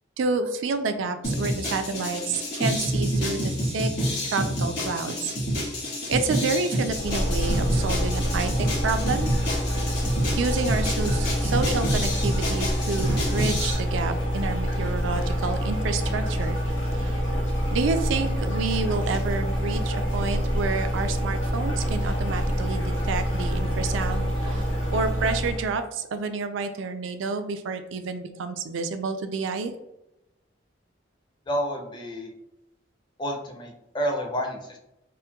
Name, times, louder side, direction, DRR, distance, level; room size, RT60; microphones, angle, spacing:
voice 1, 0.2-3.9 4.3-5.3 6.1-9.3 10.4-16.6 17.0-17.2 17.7-24.6 24.9-29.7, right 4 dB, 80° right, 8 dB, 0.4 m, -29 dB
sound 1, 1.2-13.7, equal, 60° left, 1.5 m, -28 dB
sound 2, 6.8-25.8, equal, 85° left, 1.2 m, -26 dB
voice 2, 31.5-32.3 33.2-34.8, equal, 25° left, 2 dB, 0.5 m, -29 dB
4.2 x 2.1 x 2.2 m, 0.87 s
head